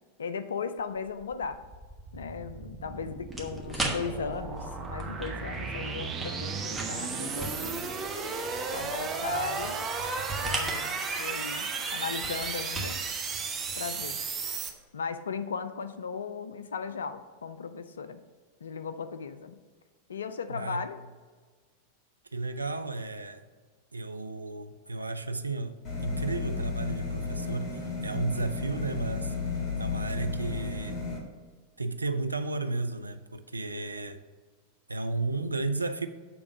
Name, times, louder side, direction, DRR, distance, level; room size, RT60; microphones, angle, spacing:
voice 1, 0.2-1.6 2.1-7.9 8.7-9.9 10.4-13.0 13.8-14.2 14.9-18.2 18.6-19.6 20.1-21.0, left 5 dB, 70° left, 0.4 m, -37 dB
sound 1, 1.0-14.7, right 4 dB, 25° right, 0.8 m, -34 dB
Power plugging, 3.3-14.4, right 2 dB, 5° right, 1.2 m, -40 dB
voice 2, 20.5-20.8 22.3-23.4 23.9-29.3 29.8-31.0 31.8-34.2 34.9-36.1, right 3 dB, 80° right, 0.4 m, -33 dB
Electricity generator loop, 25.8-31.2, left 4 dB, 35° left, 1.7 m, -33 dB
6.9 x 3.5 x 6.1 m
figure-of-eight pair, 90°, 0 cm